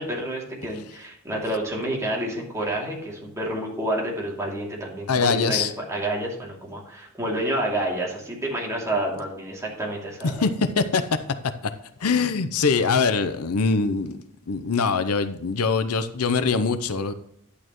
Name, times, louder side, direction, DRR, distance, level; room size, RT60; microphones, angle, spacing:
voice 1, 0.0-10.4, right 1 dB, 15° right, -3 dB, 2.7 m, -29 dB
voice 2, 5.1-5.7 10.4-11.2 12.0-14.2 14.5-17.1, left 4 dB, 75° left, 12 dB, 0.7 m, -23 dB
11.0 x 8.5 x 3.1 m, 0.71 s
head